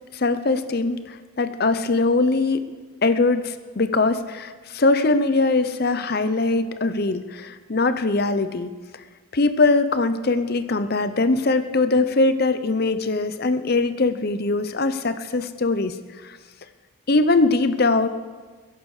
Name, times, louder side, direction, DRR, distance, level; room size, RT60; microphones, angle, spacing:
voice 1, 0.1-2.7 3.0-8.7 9.3-16.0 16.2-16.4 17.1-18.1, left 3 dB, 45° left, 11 dB, 0.7 m, -21 dB
21.0 x 11.0 x 4.9 m, 1.4 s
head